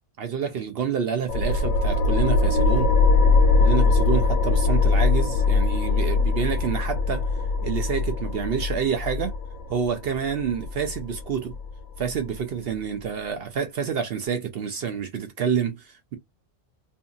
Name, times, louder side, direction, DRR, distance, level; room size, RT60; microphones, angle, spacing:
voice 1, 0.2-2.9 3.6-7.2 7.6-9.3 9.7-11.5 12.0-16.2, right 7 dB, 60° right, 0.6 m, -28 dB
sound 1, 1.3-12.3, left 3 dB, 85° left, 1.0 m, -22 dB
2.6 x 2.6 x 2.3 m
omnidirectional pair, 1.4 m